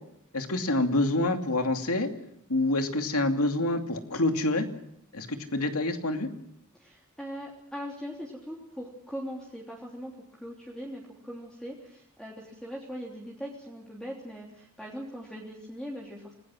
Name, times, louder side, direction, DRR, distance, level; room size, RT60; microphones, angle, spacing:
voice 1, 0.3-2.1 2.5-4.7 5.1-6.3, left 2 dB, 75° left, 6 dB, 2.6 m, -27 dB
voice 2, 6.7-16.3, equal, 5° left, -3 dB, 3.3 m, -40 dB
28.0 x 19.5 x 6.2 m, 0.76 s
head